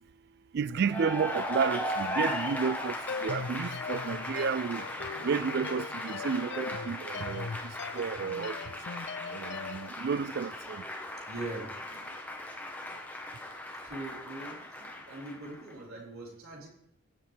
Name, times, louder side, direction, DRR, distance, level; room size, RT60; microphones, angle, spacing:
voice 1, 0.5-2.9 3.2-4.8 5.2-7.5 8.0-8.5 9.5-10.5, right 6 dB, 50° right, 0.3 m, -31 dB
Cheering / Applause, 0.8-15.7, left 1 dB, 10° left, 1.1 m, -37 dB
sound 1, 3.1-9.9, left 5 dB, 55° left, 0.4 m, -40 dB
voice 2, 11.3-11.7 13.8-14.6 15.0-16.7, right 2 dB, 80° right, 4.2 m, -41 dB
16.0 x 7.9 x 3.4 m
head